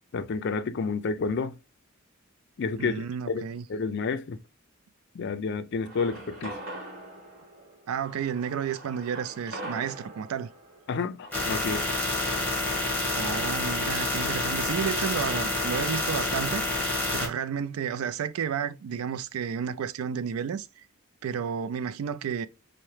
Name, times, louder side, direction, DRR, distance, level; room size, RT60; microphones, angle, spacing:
voice 1, 0.1-1.6 2.6-3.4 3.7-4.4 5.1-6.6 10.9-11.8, left 4 dB, 55° left, 0.4 m, -30 dB
voice 2, 2.8-3.7 7.9-10.5 13.1-16.7 17.1-20.8 21.2-22.5, right 7 dB, 85° right, 0.3 m, -31 dB
sound 1, 5.8-12.7, right 1 dB, 45° right, 1.3 m, -43 dB
sound 2, 11.3-17.3, left 2 dB, 10° left, 1.3 m, -28 dB
5.5 x 2.1 x 3.1 m
head